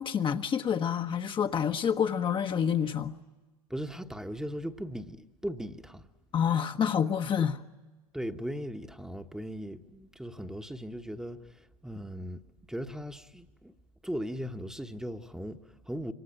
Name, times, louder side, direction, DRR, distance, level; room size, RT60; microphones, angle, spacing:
voice 1, 0.0-3.2 6.3-7.6, left 8 dB, 25° left, 1.1 m, -28 dB
voice 2, 3.7-6.1 8.1-12.4 12.7-13.7 14.0-16.1, equal, 5° right, 1.2 m, -38 dB
27.0 x 24.5 x 8.9 m
hypercardioid pair, 100°, 19 cm